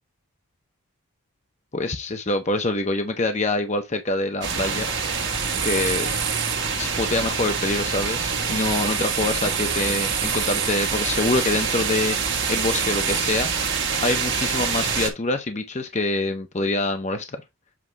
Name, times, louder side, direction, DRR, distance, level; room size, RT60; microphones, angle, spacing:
voice 1, 1.7-4.9 5.6-6.1 6.8-12.2 12.5-13.5 14.0-17.4, left 2 dB, 30° left, 0.8 m, -25 dB
sound 1, 4.4-15.1, right 6 dB, 55° right, 1.7 m, -25 dB
7.7 x 2.9 x 4.6 m
head